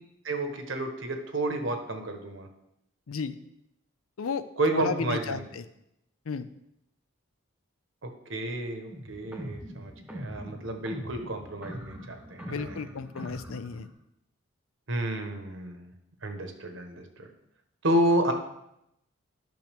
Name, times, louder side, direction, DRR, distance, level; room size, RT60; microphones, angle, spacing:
voice 1, 0.2-2.5 4.6-5.4 8.0-12.8 14.9-15.9 16.2-17.3 17.8-18.3, right 1 dB, 65° right, 5 dB, 1.1 m, -30 dB
voice 2, 4.7-5.6 6.3-6.5 12.5-13.9, left 5 dB, 80° left, 13 dB, 0.5 m, -33 dB
sound 1, 8.9-13.9, equal, 5° right, 0.9 m, -41 dB
10.5 x 6.0 x 3.5 m, 0.81 s
head